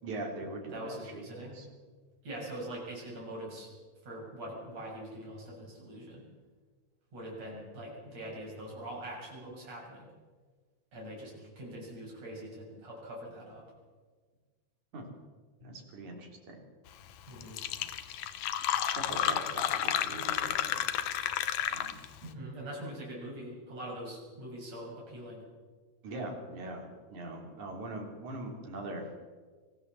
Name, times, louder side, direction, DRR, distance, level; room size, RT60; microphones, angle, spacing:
voice 1, 0.0-1.0 1.3-1.7 14.9-15.1 15.6-16.6 18.9-20.8 21.7-22.0 26.0-29.0, right 2 dB, 75° right, 2 dB, 4.7 m, -41 dB
voice 2, 0.7-1.6 2.2-3.7 4.0-6.2 7.1-10.1 10.9-13.6 17.3-17.6 22.2-25.4, right 1 dB, 60° right, -3 dB, 8.3 m, -43 dB
Fill (with liquid), 17.1-17.2 17.4-22.2, left 11 dB, 75° left, 2.2 m, -31 dB
24.5 x 15.0 x 7.6 m, 1.5 s
omnidirectional pair, 3.4 m